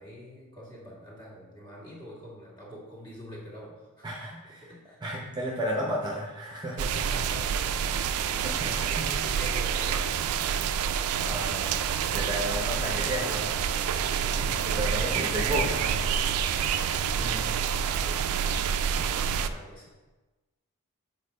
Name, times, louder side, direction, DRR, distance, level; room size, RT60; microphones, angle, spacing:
voice 1, 0.0-4.1 4.6-5.0 6.9-10.3 12.1-12.4 14.0-15.4 16.3-17.5 17.8-18.3 18.8-20.0, equal, 20° left, -6 dB, 2.0 m, -44 dB
voice 2, 4.0-4.7 5.0-7.0 8.4-9.1 11.2-11.8 12.1-13.6 14.8-16.0 17.1-17.5 18.9-19.0, equal, 20° right, -2 dB, 0.8 m, -33 dB
sound 1, 6.8-19.5, right 7 dB, 75° right, 0.4 m, -28 dB
7.3 x 4.3 x 4.2 m, 1.2 s
head